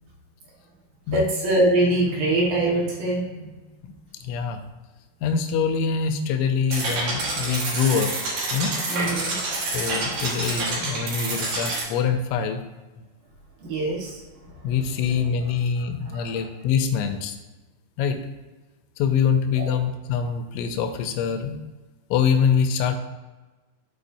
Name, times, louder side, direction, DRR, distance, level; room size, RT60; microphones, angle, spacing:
voice 1, 1.1-3.5 8.9-9.4 13.6-14.7 15.8-15.9 16.1-16.5 19.6-19.7, right 1 dB, 70° right, -4 dB, 1.8 m, -24 dB
voice 2, 4.2-4.6 5.2-8.1 8.5-8.7 9.7-12.6 14.6-17.4 18.0-18.2 19.0-21.6 22.1-23.0, left 6 dB, 80° left, 6 dB, 3.0 m, -24 dB
sound 1, 6.7-11.8, right 2 dB, 85° right, 1.6 m, -28 dB
13.0 x 4.4 x 2.6 m, 1.2 s
omnidirectional pair, 5.9 m